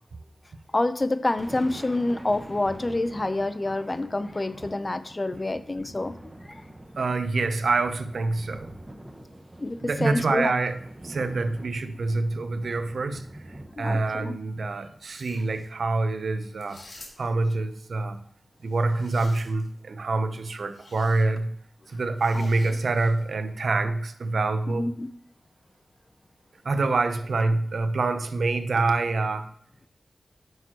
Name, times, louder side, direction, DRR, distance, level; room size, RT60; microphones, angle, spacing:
voice 1, 0.7-6.1 6.5-6.6 9.6-10.5 13.8-14.4 22.3-22.5 24.7-25.1, left 2 dB, 35° left, 12 dB, 0.6 m, -27 dB
Thunder, 1.1-15.6, right 1 dB, 20° right, 1.1 m, -45 dB
voice 2, 7.0-8.7 9.8-13.3 13.8-16.8 17.2-18.2 18.6-21.5 21.9-24.9 26.6-29.5, right 3 dB, 75° right, 9 dB, 0.7 m, -26 dB
sound 1, 15.0-15.7 16.6-17.5 18.6-19.8 20.7-21.2 22.2-23.3, left 2 dB, 65° left, 2.2 m, -50 dB
9.2 x 6.4 x 3.0 m, 0.68 s
wide cardioid pair, 70°, 0 cm